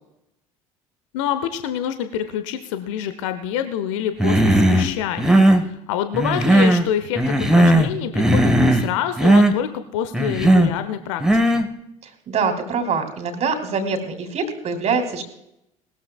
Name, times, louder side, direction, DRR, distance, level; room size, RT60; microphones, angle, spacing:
voice 1, 1.1-11.6, left 9 dB, 60° left, 10 dB, 1.0 m, -27 dB
Human voice, 4.2-4.9 5.2-5.7 6.1-6.9 7.2-7.9 8.2-8.9 9.2-9.5 10.1-10.7 11.2-11.7, right 1 dB, 5° right, 1.7 m, -16 dB
voice 2, 12.0-15.2, right 5 dB, 40° right, 6 dB, 3.2 m, -24 dB
20.5 x 13.5 x 2.4 m, 0.78 s
figure-of-eight pair, 60°, 18 cm